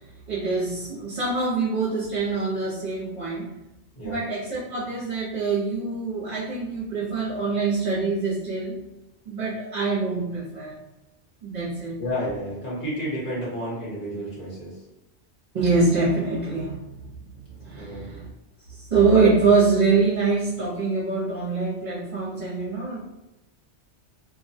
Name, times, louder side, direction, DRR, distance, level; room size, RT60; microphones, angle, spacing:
voice 1, 0.3-3.6 4.0-8.8 9.2-10.8 11.4-12.0 15.5-16.9 17.5-18.3 18.7-23.0, right 4 dB, 50° right, -10 dB, 0.9 m, -24 dB
voice 2, 12.0-14.8 17.7-18.0, equal, 45° left, -8 dB, 1.3 m, -31 dB
2.6 x 2.2 x 2.6 m, 0.94 s
omnidirectional pair, 1.2 m